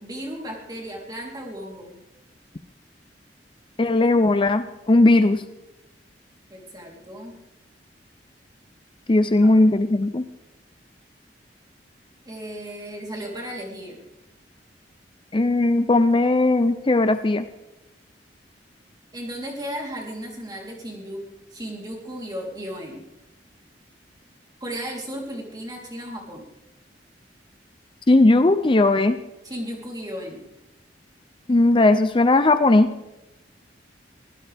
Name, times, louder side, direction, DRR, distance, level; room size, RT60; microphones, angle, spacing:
voice 1, 0.0-2.0 5.2-5.4 6.5-7.4 9.2-9.6 12.3-14.0 19.1-23.0 24.6-26.4 29.4-30.4, equal, 25° right, -1 dB, 3.6 m, -35 dB
voice 2, 3.8-5.4 9.1-10.2 15.3-17.5 28.1-29.2 31.5-32.9, left 2 dB, 30° left, 10 dB, 0.5 m, -18 dB
23.5 x 16.0 x 3.5 m, 0.98 s
head